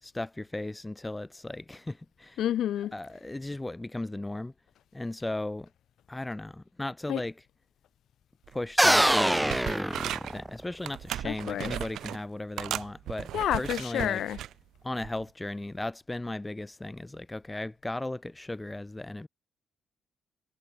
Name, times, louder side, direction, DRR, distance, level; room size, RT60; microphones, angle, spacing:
voice 1, 0.0-2.4 2.9-4.5 4.9-5.7 6.1-7.3 8.5-10.0 10.3-14.2 14.8-19.3, left 2 dB, 15° left, 3.9 m, -36 dB
voice 2, 2.4-2.9 7.1-7.2 11.2-11.7 13.3-14.4, left 11 dB, 75° left, 1.6 m, -29 dB
sound 1, 8.5-8.6 8.9-10.4 10.8-12.2 12.6-14.5 15.0-15.2, right 12 dB, 80° right, 1.8 m, -37 dB
sound 2, 8.8-10.7, right 1 dB, 5° right, 1.4 m, -24 dB
cardioid pair, 90°, 0 cm